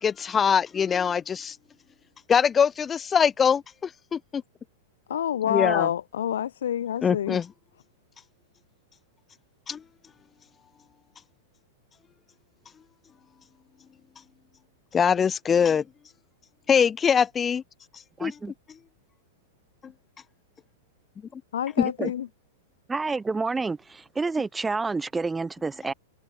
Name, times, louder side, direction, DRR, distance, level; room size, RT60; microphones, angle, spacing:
voice 1, 0.0-1.6 2.3-4.4 5.5-5.9 7.0-7.5 9.7-9.8 14.9-15.8 16.7-17.6 18.2-18.4 19.8-19.9 21.3-21.4 21.8-21.9, left 7 dB, 20° left, 0.4 m, -23 dB
voice 2, 5.1-7.4 21.5-22.3, left 10 dB, 80° left, 0.6 m, -27 dB
voice 3, 18.2-18.5 22.0-22.1 22.9-25.9, right 4 dB, 10° right, 1.0 m, -29 dB
hypercardioid pair, 120°, 0 cm